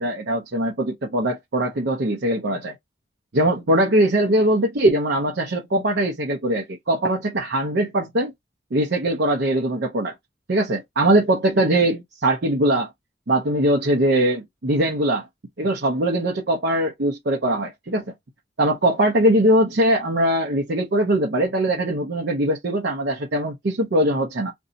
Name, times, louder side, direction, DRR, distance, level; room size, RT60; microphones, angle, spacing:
voice 1, 0.0-2.7 3.3-8.3 8.7-10.1 10.5-12.9 13.3-15.3 15.6-18.1 18.6-24.5, right 1 dB, 70° right, 0.7 m, -21 dB
2.6 x 2.3 x 3.9 m
head